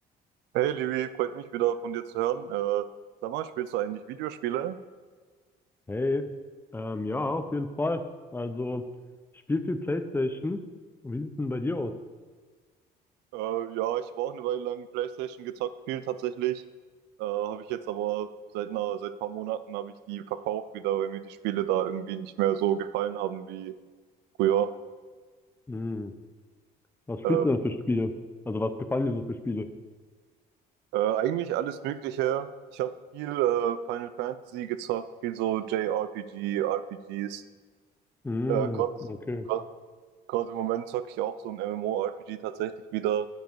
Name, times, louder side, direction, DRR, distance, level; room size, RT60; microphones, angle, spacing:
voice 1, 0.5-2.9 3.2-4.8 13.3-16.6 17.2-23.7 24.4-24.7 27.2-27.4 30.9-32.5 32.7-36.8 37.1-37.4 38.5-38.9 39.5-39.6 40.3-43.3, right 11 dB, 90° right, 13 dB, 0.4 m, -30 dB
voice 2, 5.9-6.2 6.7-8.0 8.3-8.8 9.5-10.6 11.0-11.9 25.7-26.1 27.1-28.1 28.5-29.7 38.2-38.8 39.1-39.5, left 2 dB, 15° left, 9 dB, 0.5 m, -29 dB
9.1 x 5.3 x 4.6 m, 1.5 s
cardioid pair, 110°, 17 cm